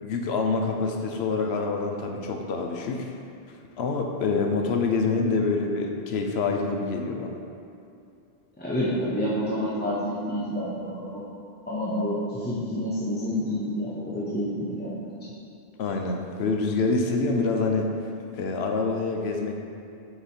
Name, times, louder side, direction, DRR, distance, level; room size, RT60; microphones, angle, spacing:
voice 1, 0.0-3.1 3.8-7.4 15.8-17.9 18.3-19.5, left 4 dB, 70° left, 3 dB, 0.9 m, -26 dB
voice 2, 8.6-11.2 11.7-15.3, equal, 10° left, -8 dB, 0.6 m, -29 dB
8.1 x 3.0 x 4.2 m, 2.6 s
omnidirectional pair, 1.1 m